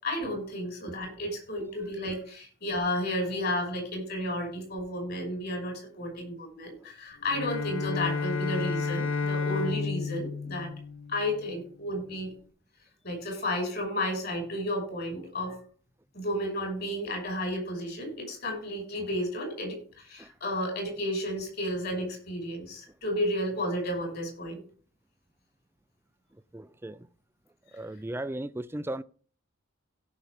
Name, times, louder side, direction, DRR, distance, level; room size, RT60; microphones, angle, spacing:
voice 1, 0.0-10.7 11.1-12.3 13.0-15.6 16.1-24.6, left 1 dB, 50° left, 5.8 m, -32 dB
Bowed string instrument, 7.2-11.6, left 4 dB, 70° left, 0.9 m, -31 dB
voice 2, 26.5-27.0 27.7-29.0, right 1 dB, 10° right, 0.4 m, -36 dB
17.0 x 6.1 x 3.6 m
head